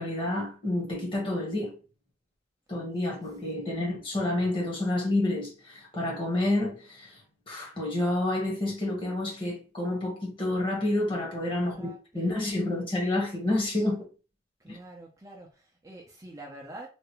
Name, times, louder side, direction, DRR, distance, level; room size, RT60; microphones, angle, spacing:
voice 1, 0.0-1.7 2.7-7.2 7.5-14.1 14.7-14.8, left 1 dB, 30° left, 1.3 m, -29 dB
voice 2, 3.5-3.9 11.7-12.6 14.6-16.9, right 1 dB, 20° right, 0.5 m, -47 dB
3.3 x 2.5 x 3.0 m
head